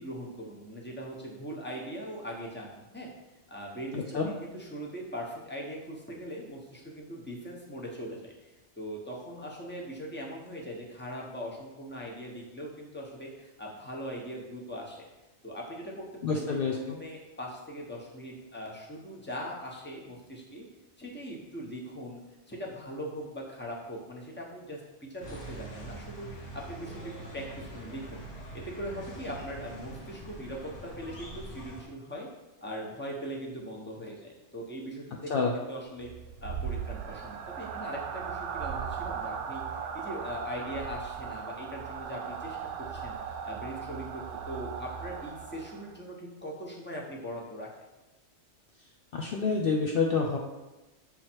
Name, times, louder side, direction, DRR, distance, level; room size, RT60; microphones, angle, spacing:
voice 1, 0.0-3.1 3.5-15.0 15.4-16.5 16.9-20.6 21.0-22.2 22.5-28.2 28.5-32.3 32.6-36.1 36.4-39.6 39.9-43.2 43.4-47.7, equal, 10° left, -2 dB, 0.9 m, -40 dB
voice 2, 3.9-4.3 16.2-17.0 35.3-35.6 49.1-50.4, left 4 dB, 60° left, 1 dB, 0.7 m, -28 dB
sound 1, 25.2-31.8, right 1 dB, 75° left, 1.6 m, -44 dB
sound 2, 36.0-46.0, right 7 dB, 80° right, 0.9 m, -38 dB
7.3 x 3.2 x 4.5 m, 1.1 s
omnidirectional pair, 1.2 m